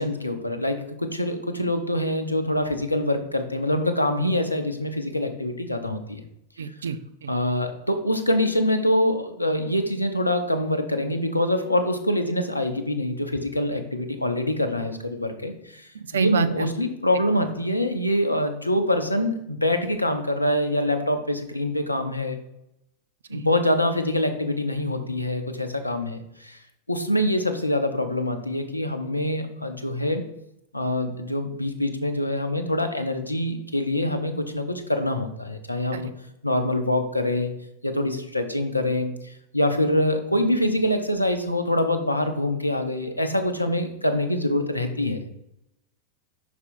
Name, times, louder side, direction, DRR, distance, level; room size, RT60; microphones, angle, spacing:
voice 1, 0.0-6.2 7.3-22.4 23.3-26.6 26.9-30.2 30.7-36.1 36.4-37.5 37.8-45.3, left 1 dB, 85° left, 7 dB, 0.6 m, -25 dB
voice 2, 6.6-7.3 15.9-16.7 23.3-23.5 35.9-36.1, right 6 dB, 65° right, 11 dB, 0.4 m, -28 dB
5.6 x 4.2 x 4.3 m, 0.82 s
figure-of-eight pair, 90°, 0 cm